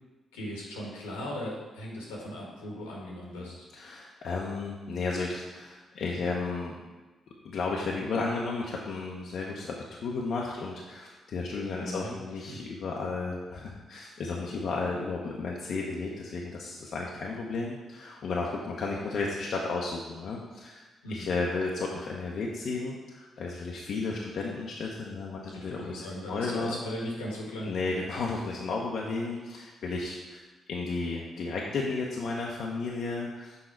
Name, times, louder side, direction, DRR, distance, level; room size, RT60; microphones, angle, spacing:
voice 1, 0.3-3.7 11.8-12.1 12.5-12.6 21.0-21.3 25.5-27.7, left 1 dB, 90° left, -3 dB, 1.3 m, -38 dB
voice 2, 3.4-6.8 7.4-20.8 21.1-26.8 27.6-30.4 30.7-33.6, left 3 dB, 65° left, -2 dB, 0.7 m, -33 dB
6.4 x 3.9 x 4.5 m, 1.2 s
hypercardioid pair, 45°, 0 cm